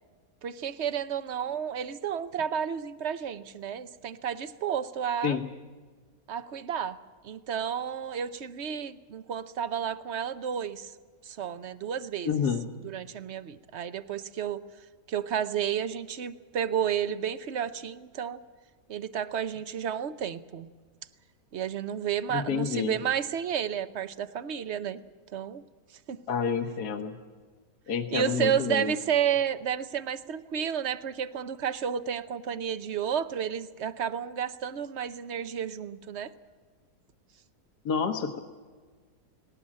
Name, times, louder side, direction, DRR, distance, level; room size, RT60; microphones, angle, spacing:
voice 1, 0.4-5.4 6.3-7.0 7.2-10.9 11.2-12.5 12.8-14.6 15.1-18.4 18.9-20.7 21.5-25.0 25.3-25.6 26.1-26.2 28.1-36.3, right 8 dB, 55° right, 14 dB, 0.8 m, -31 dB
voice 2, 12.2-12.6 22.3-22.9 26.3-27.2 27.9-28.9 37.8-38.4, left 6 dB, 70° left, 6 dB, 1.6 m, -29 dB
19.0 x 18.0 x 8.6 m, 1.4 s
omnidirectional pair, 1.8 m